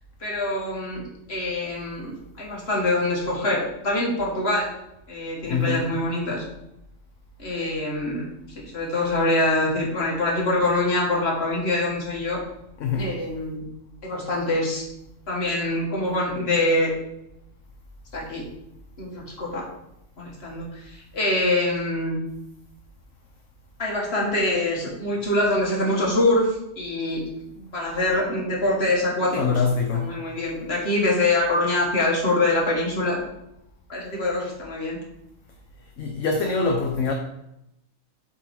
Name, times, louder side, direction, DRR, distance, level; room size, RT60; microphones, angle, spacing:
voice 1, 0.2-4.7 5.1-6.4 7.4-8.3 8.6-12.4 13.0-13.6 14.0-14.8 15.3-16.9 18.1-18.4 19.0-19.6 20.2-22.2 23.8-27.2 27.7-29.6 29.9-33.2 33.9-35.0, left 2 dB, 50° left, 2.1 m, -24 dB
voice 2, 5.4-5.8 12.8-13.1 29.4-30.2 36.0-37.1, left 4 dB, 70° left, 1.1 m, -24 dB
7.8 x 4.6 x 4.4 m
omnidirectional pair, 1.3 m